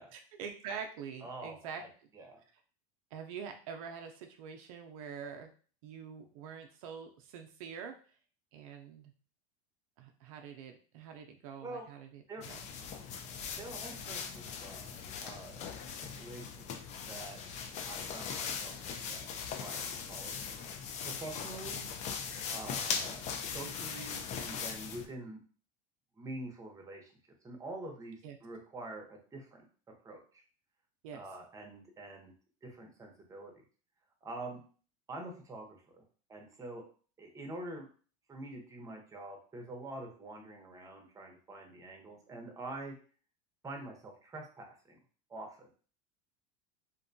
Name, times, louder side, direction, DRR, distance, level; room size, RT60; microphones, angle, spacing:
voice 1, 0.1-2.1 3.1-5.5 5.8-8.0 8.5-9.1 10.0-12.6 28.2-28.4 31.0-31.2, right 6 dB, 80° right, 4 dB, 0.5 m, -45 dB
voice 2, 1.2-1.9 2.1-2.4 11.6-11.9 12.3-12.4 13.6-15.6 16.1-16.8 17.1-17.4 17.9-19.3 19.6-20.5 21.0-21.8 22.4-23.2 23.5-25.4 26.2-27.1 27.4-29.6 30.0-30.4 31.1-32.3 32.6-33.5 34.2-34.6 35.1-35.7 35.9-36.0 36.3-36.8 37.2-37.9 38.3-42.9 43.6-45.0 45.3-45.7, right 2 dB, 20° right, 1 dB, 0.7 m, -46 dB
sound 1, 12.4-25.1, left 6 dB, 40° left, 0.4 m, -40 dB
2.6 x 2.2 x 2.6 m, 0.40 s
supercardioid pair, 115°, 18 cm